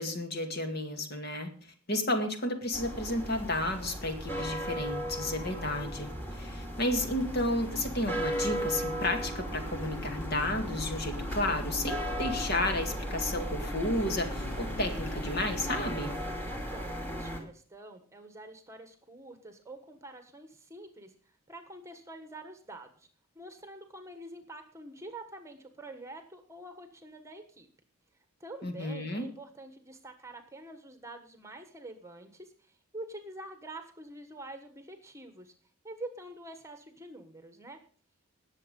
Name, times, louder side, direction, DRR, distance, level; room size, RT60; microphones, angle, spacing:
voice 1, 0.0-1.5 1.9-16.1 28.6-29.3, left 1 dB, 50° left, 5 dB, 2.2 m, -32 dB
sound 1, 2.7-17.4, equal, 10° left, 2.4 m, -36 dB
sound 2, 7.0-15.9, left 4 dB, 65° left, 1.7 m, -46 dB
voice 2, 16.5-21.1 21.5-23.1 23.3-27.7 28.4-35.5 35.8-37.8, right 2 dB, 15° right, 8 dB, 1.3 m, -46 dB
19.5 x 7.3 x 5.3 m, 0.42 s
head